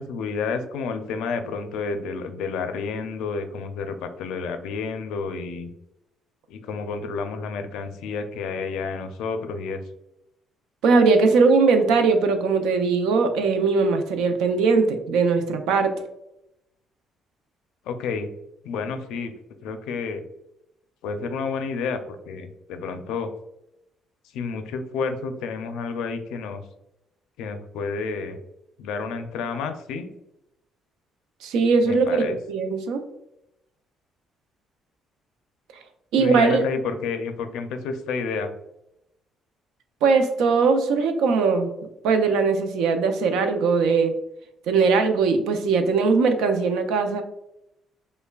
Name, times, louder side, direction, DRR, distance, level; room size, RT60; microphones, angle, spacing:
voice 1, 0.0-5.7 6.5-9.8 17.9-18.3 18.6-19.3 19.6-20.2 21.0-22.0 22.3-23.3 24.3-26.6 27.4-28.4 28.8-30.1 31.8-32.4 36.2-38.5, left 5 dB, 85° left, 8 dB, 0.4 m, -30 dB
voice 2, 10.8-15.9 31.4-33.0 36.1-36.6 40.0-41.7 42.0-44.1 44.7-47.2, right 4 dB, 85° right, 7 dB, 0.5 m, -20 dB
5.4 x 2.2 x 2.3 m, 0.87 s
cardioid pair, 105°, 0 cm